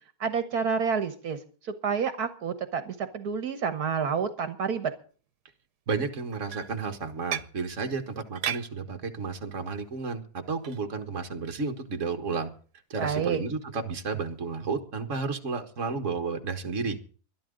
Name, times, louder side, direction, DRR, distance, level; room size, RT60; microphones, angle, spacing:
voice 1, 0.2-4.9 13.0-13.4, right 6 dB, 75° right, 10 dB, 1.7 m, -29 dB
voice 2, 5.9-12.5 12.9-17.0, right 4 dB, 50° right, 5 dB, 1.9 m, -32 dB
sound 1, 6.1-7.6 8.1-8.7 9.5-9.7 10.5-10.8 11.3-11.5 12.0-12.1 13.4-13.5 14.2-14.4, right 9 dB, 90° right, 1.5 m, -35 dB
21.5 x 12.0 x 3.9 m, 0.41 s
omnidirectional pair, 1.7 m